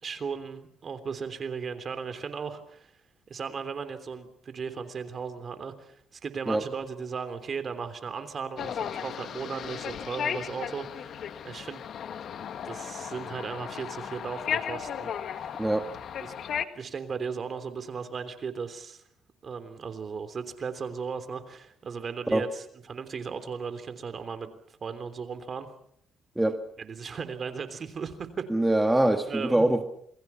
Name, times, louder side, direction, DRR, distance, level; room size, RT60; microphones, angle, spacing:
voice 1, 0.0-2.9 3.3-11.8 12.6-15.6 16.2-16.3 16.7-19.0 19.4-25.7 26.8-28.5 29.3-29.7, right 5 dB, 45° right, 10 dB, 3.3 m, -36 dB
sound 1, 8.6-16.7, left 8 dB, 65° left, 1.6 m, -35 dB
voice 2, 28.5-29.8, right 1 dB, 10° right, 6 dB, 1.8 m, -23 dB
28.0 x 21.5 x 5.8 m, 0.67 s
cardioid pair, 90°, 0 cm